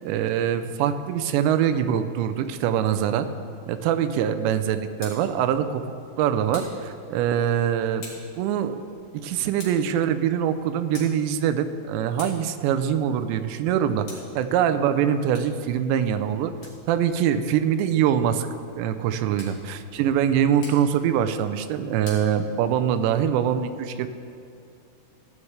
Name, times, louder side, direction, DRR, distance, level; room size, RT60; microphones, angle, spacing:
voice 1, 0.0-3.3 3.7-8.0 8.4-8.8 9.1-14.1 14.4-16.5 16.9-18.5 18.8-24.1, right 9 dB, 85° right, 9 dB, 2.8 m, -23 dB
Tick, 4.7-23.1, left 3 dB, 50° left, 3.8 m, -49 dB
16.0 x 11.0 x 3.3 m, 2.5 s
omnidirectional pair, 5.1 m